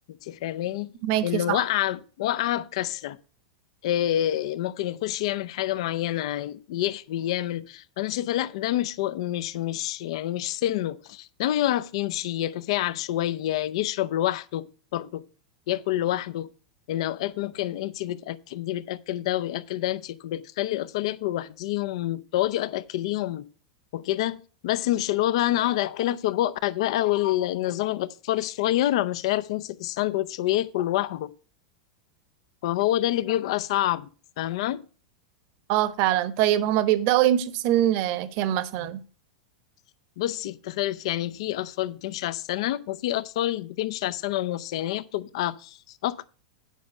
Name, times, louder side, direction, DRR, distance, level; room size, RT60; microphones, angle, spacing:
voice 1, 0.1-0.9 1.2-3.2 3.8-15.2 15.7-16.5 16.9-23.5 23.9-31.3 32.6-34.1 34.4-34.9 40.2-46.3, left 14 dB, 65° left, 0.5 m, -27 dB
voice 2, 1.0-1.6 35.7-39.0, right 12 dB, 50° right, 1.0 m, -23 dB
9.3 x 5.3 x 6.3 m
hypercardioid pair, 100°, 3 cm